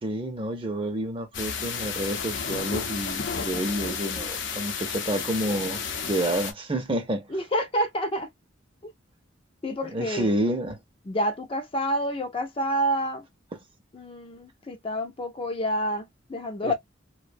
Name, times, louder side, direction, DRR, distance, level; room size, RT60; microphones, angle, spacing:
voice 1, 0.0-5.8 6.1-7.3 9.9-10.8 16.6-16.7, right 1 dB, 30° right, 0.6 m, -29 dB
sound 1, 1.3-6.5, left 6 dB, 70° left, 0.7 m, -32 dB
voice 2, 7.3-8.3 9.6-10.3 11.0-13.3 13.9-16.7, equal, 30° left, 0.5 m, -28 dB
2.5 x 2.2 x 2.5 m
head